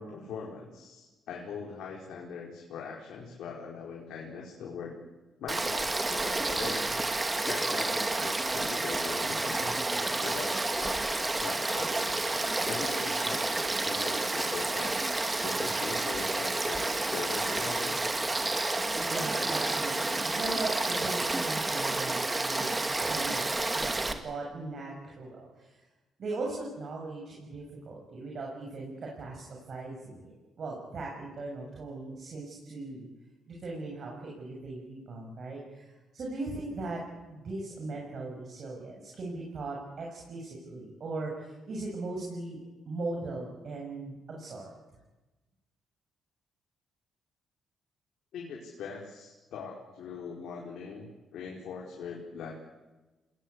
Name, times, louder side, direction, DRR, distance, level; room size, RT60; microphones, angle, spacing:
voice 1, 0.0-4.9 5.4-7.0 7.5-9.8 10.2-12.2 12.6-15.0 15.4-18.2 48.3-52.5, left 5 dB, 75° left, -2 dB, 5.0 m, -41 dB
Frog / Stream, 5.5-24.1, right 2 dB, 20° right, 2.5 m, -30 dB
voice 2, 19.0-23.4 23.7-25.7 26.2-33.1 33.5-37.0 37.3-42.6 42.9-44.7, right 3 dB, 50° right, -1 dB, 7.4 m, -39 dB
28.0 x 20.5 x 8.4 m, 1.1 s
cardioid pair, 90°, 0 cm